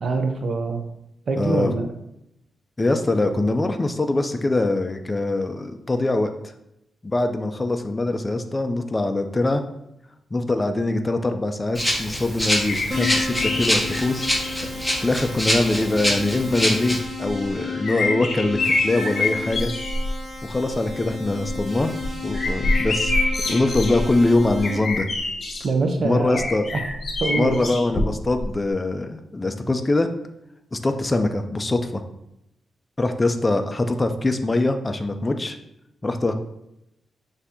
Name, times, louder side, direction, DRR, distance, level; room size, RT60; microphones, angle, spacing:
voice 1, 0.0-0.8 1.3-1.9 25.6-26.8 27.2-27.6, right 3 dB, 55° right, 4 dB, 0.6 m, -24 dB
voice 2, 1.4-1.7 2.8-6.3 7.0-9.6 10.3-14.4 15.0-18.6 18.8-19.7 20.4-21.9 22.2-23.1 23.4-25.1 26.0-26.7 27.4-30.1 30.7-32.0 33.0-35.6 36.0-36.3, left 2 dB, 20° left, 7 dB, 0.4 m, -23 dB
Rattle (instrument), 11.7-17.0, equal, ahead, 0.9 m, -25 dB
sound 1, 12.6-14.7 15.5-15.6 17.2-20.1 20.5-20.9 21.3-25.7 26.3-28.4 28.7-28.8, left 2 dB, 60° left, 0.9 m, -26 dB
Keyboard (musical), 12.9-24.8, left 4 dB, 20° right, 1.1 m, -33 dB
6.3 x 2.7 x 2.7 m, 0.83 s
cardioid pair, 110°, 0 cm